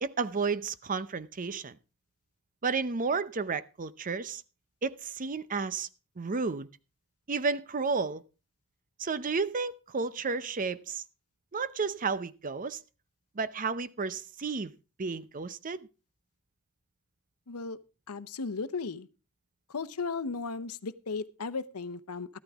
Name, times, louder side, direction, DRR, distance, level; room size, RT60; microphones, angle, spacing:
voice 1, 0.0-1.8 2.6-4.4 4.8-5.9 6.2-6.7 7.3-8.2 9.0-11.0 11.5-12.8 13.4-14.7 15.0-15.9, right 4 dB, 40° right, 0.6 m, -32 dB
voice 2, 17.5-17.8 18.1-19.1 19.7-22.3, left 4 dB, 85° left, 0.8 m, -35 dB
13.5 x 12.5 x 3.5 m
head